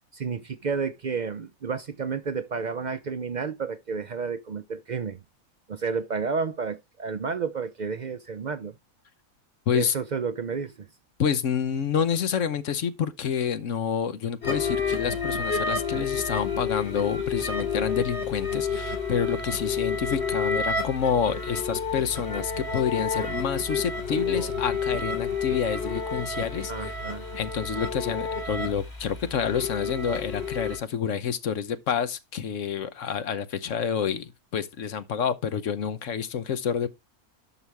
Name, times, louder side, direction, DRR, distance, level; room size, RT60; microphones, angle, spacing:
voice 1, 0.1-5.2 5.7-8.7 9.7-10.9 24.1-24.5 26.7-27.3, right 5 dB, 70° right, 0.4 m, -31 dB
voice 2, 9.7-10.0 11.2-27.0 27.3-36.9, left 7 dB, 60° left, 1.2 m, -28 dB
sound 1, 14.4-30.8, left 5 dB, 45° left, 3.4 m, -30 dB
11.0 x 6.0 x 3.4 m
omnidirectional pair, 1.6 m